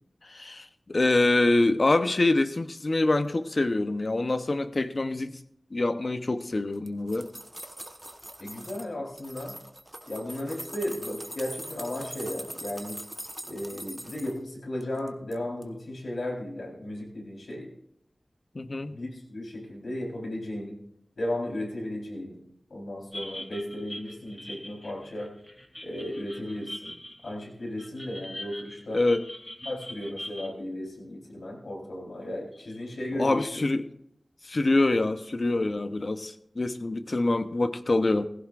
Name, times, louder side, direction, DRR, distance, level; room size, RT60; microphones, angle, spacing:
voice 1, 0.3-5.4 5.7-7.3 18.5-18.9 28.9-29.3 33.1-33.8 34.4-38.3, left 2 dB, 55° left, 10 dB, 0.8 m, -25 dB
sound 1, 6.7-8.9 9.2-14.4 14.8-15.4 15.6-15.7, right 1 dB, 20° right, 1.2 m, -42 dB
voice 2, 8.4-9.6 10.1-13.0 13.5-17.7 18.9-20.8 21.2-22.4 22.7-25.3 25.8-27.0 27.2-29.0 29.6-33.6, left 1 dB, 85° left, -2 dB, 4.1 m, -35 dB
sound 2, 23.1-30.5, left 1 dB, 20° left, 2.2 m, -42 dB
17.5 x 16.0 x 2.5 m, 0.73 s
wide cardioid pair, 50°, 0 cm